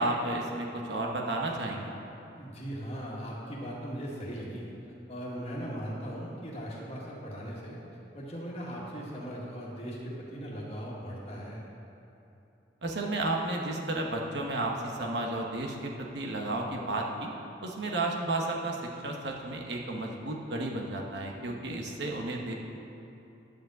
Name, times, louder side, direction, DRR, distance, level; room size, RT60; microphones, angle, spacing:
voice 1, 0.0-1.9 12.8-14.7 15.0-17.3 17.6-22.5, right 2 dB, 70° right, 0 dB, 1.1 m, -32 dB
voice 2, 2.3-4.7 5.1-7.8 8.1-11.6, equal, 35° left, -4 dB, 1.8 m, -39 dB
10.5 x 5.1 x 7.7 m, 2.9 s
head